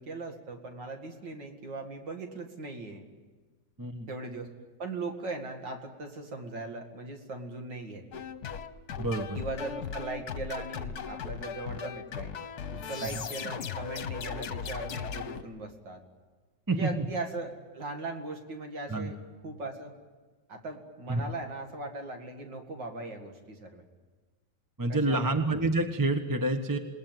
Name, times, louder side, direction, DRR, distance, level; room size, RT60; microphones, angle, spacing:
voice 1, 0.0-3.0 4.1-4.5 4.8-8.2 9.3-12.3 12.7-16.0 16.7-19.2 19.4-19.9 20.5-23.8 24.9-25.3, right 2 dB, 80° right, 4 dB, 2.8 m, -39 dB
voice 2, 3.8-4.1 9.0-9.4 16.7-17.1 18.9-19.1 21.1-21.2 24.8-26.8, right 2 dB, 15° right, 6 dB, 1.1 m, -28 dB
sound 1, 8.1-15.4, left 7 dB, 65° left, 1.6 m, -38 dB
28.0 x 19.5 x 9.2 m, 1.3 s
omnidirectional pair, 1.9 m